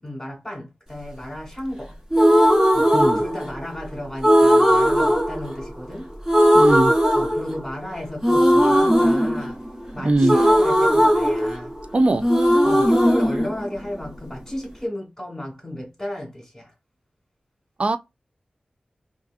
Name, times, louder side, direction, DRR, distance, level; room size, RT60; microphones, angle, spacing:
voice 1, 0.0-2.0 2.7-2.9 3.1-6.1 7.1-9.6 9.9-11.7 12.6-16.7, left 1 dB, 20° left, 1.2 m, -33 dB
sound 1, 2.1-3.8 4.2-6.0 6.3-7.8 8.2-11.9 12.2-14.3, equal, 20° right, 0.9 m, -18 dB
voice 2, 6.5-6.9 10.0-10.3 11.9-12.2 17.8-18.0, right 2 dB, 50° right, 0.4 m, -20 dB
2.6 x 2.4 x 2.4 m
wide cardioid pair, 90°, 3 cm